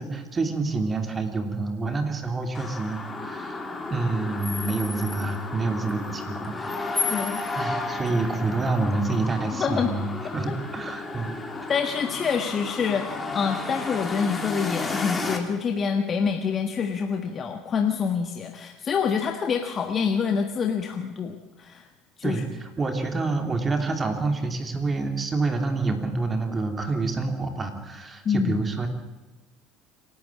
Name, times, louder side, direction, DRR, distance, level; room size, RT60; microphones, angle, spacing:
voice 1, 0.0-3.6 3.9-6.6 7.5-11.4 22.2-28.9, right 3 dB, 25° right, 6 dB, 3.2 m, -27 dB
sound 1, 2.5-15.4, left 3 dB, 20° left, 3.0 m, -32 dB
voice 2, 7.1-7.4 9.6-9.9 10.5-10.6 11.7-21.9 22.2-22.4 28.2-28.6, left 6 dB, 35° left, 5 dB, 1.5 m, -26 dB
26.0 x 12.0 x 8.7 m, 1.2 s
supercardioid pair, 110°, 0 cm